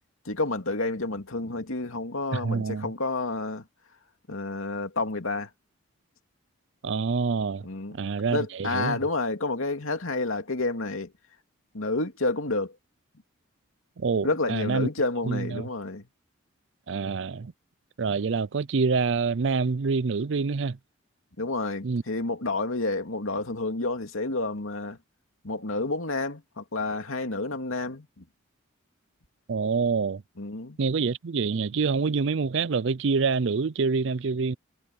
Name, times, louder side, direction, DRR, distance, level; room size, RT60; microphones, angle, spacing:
voice 1, 0.2-3.6 4.3-5.5 7.6-8.0 8.3-11.1 11.7-12.8 14.2-16.1 21.4-25.0 25.4-28.2 30.4-30.8, left 2 dB, 85° left, 2.5 m, -30 dB
voice 2, 2.3-2.9 6.8-7.7 7.9-9.0 14.0-14.9 15.3-15.7 16.9-17.5 18.0-20.8 21.8-22.0 29.5-30.2 30.8-34.6, right 4 dB, 60° right, 0.5 m, -26 dB
head